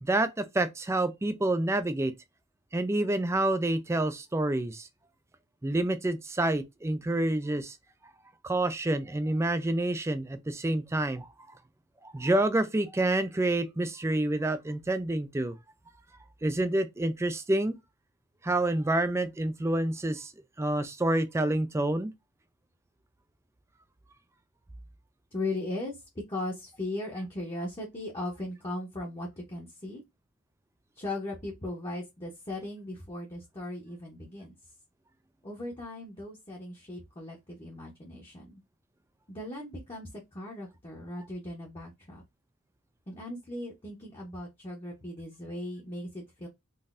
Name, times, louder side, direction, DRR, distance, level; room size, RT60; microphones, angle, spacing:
voice 1, 0.0-2.1 2.7-4.9 5.6-7.8 8.4-11.3 12.0-15.5 16.4-17.8 18.4-20.3 20.6-22.1, right 1 dB, 10° right, 0.3 m, -28 dB
voice 2, 25.3-25.9 26.3-30.0 31.0-34.5 35.4-38.6 39.3-42.2 43.1-46.5, left 1 dB, 25° left, 0.8 m, -38 dB
3.9 x 2.6 x 2.5 m
head